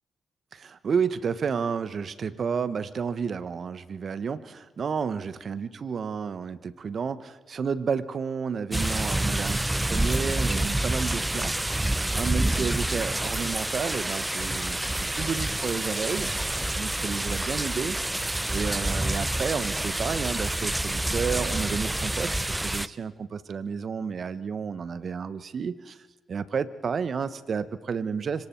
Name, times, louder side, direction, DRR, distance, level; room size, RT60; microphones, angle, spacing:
voice 1, 0.5-11.7 12.1-18.0 18.5-26.0 26.3-28.5, right 6 dB, 60° right, 14 dB, 1.1 m, -31 dB
sound 1, 8.7-22.9, right 1 dB, 15° right, 0.7 m, -28 dB
25.5 x 23.5 x 4.5 m, 1.2 s
hypercardioid pair, 40°, 0 cm